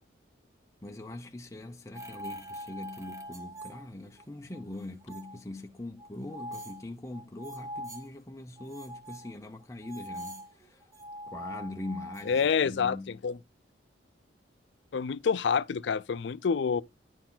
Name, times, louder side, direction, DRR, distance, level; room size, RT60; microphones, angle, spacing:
voice 1, 0.8-10.8 11.3-13.2, left 1 dB, 15° left, 0.6 m, -42 dB
sound 1, 1.9-4.2 4.5-5.4 6.0-8.1 8.6-12.5, equal, 15° right, 0.8 m, -43 dB
voice 2, 12.3-13.4 14.9-16.8, left 6 dB, 70° left, 0.4 m, -27 dB
9.8 x 4.6 x 3.8 m
head